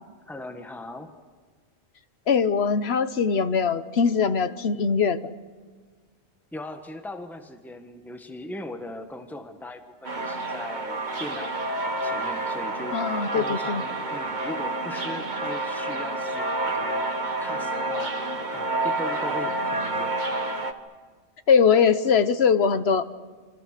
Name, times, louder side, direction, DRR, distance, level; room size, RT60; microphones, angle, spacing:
voice 1, 0.2-1.2 6.5-11.5 12.0-13.0 13.3-17.0 17.4-18.2 18.5-20.2, left 1 dB, ahead, 6 dB, 1.5 m, -39 dB
voice 2, 2.3-5.3 12.9-13.8 21.5-23.1, left 6 dB, 65° left, 12 dB, 1.2 m, -21 dB
sound 1, 10.0-20.7, right 2 dB, 45° right, 1.5 m, -29 dB
27.0 x 25.5 x 6.7 m, 1.5 s
omnidirectional pair, 1.1 m